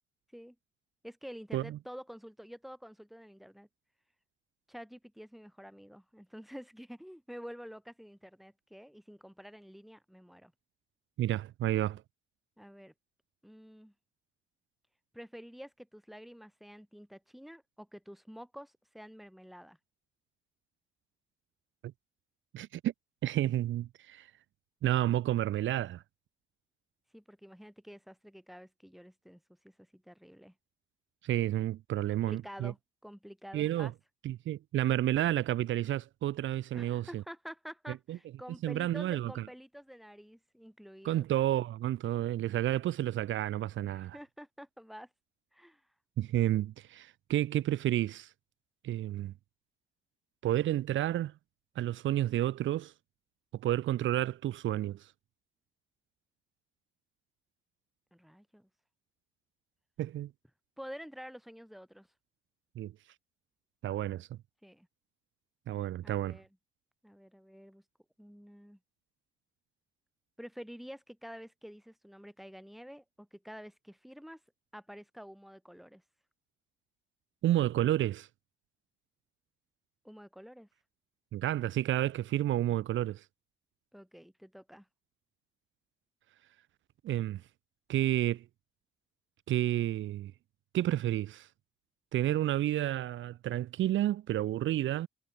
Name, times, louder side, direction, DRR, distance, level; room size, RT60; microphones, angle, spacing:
voice 1, 1.0-3.7 4.7-10.5 12.6-12.9 13.4-13.9 15.1-19.8 27.1-30.5 32.3-33.9 36.7-41.2 43.8-45.1 45.5-45.8 58.1-58.7 60.8-62.1 64.6-64.9 66.0-66.5 67.0-67.8 68.2-68.8 70.4-74.4 74.7-76.0 80.0-80.7 83.9-84.9, equal, ahead, 6.9 m, -49 dB
voice 2, 11.2-12.0 22.5-22.9 23.2-24.3 24.8-26.0 31.2-32.7 33.5-33.9 34.2-37.2 38.1-38.2 38.6-39.4 41.0-44.2 46.2-48.3 48.8-49.3 50.4-51.3 51.7-52.9 53.6-55.1 60.0-60.3 62.7-62.9 63.8-64.3 65.7-66.4 77.4-78.3 81.3-83.2 87.0-87.4 87.9-88.4 89.5-90.3 90.7-91.5 92.1-95.1, right 13 dB, 75° right, 1.5 m, -30 dB
cardioid pair, 90°, 20 cm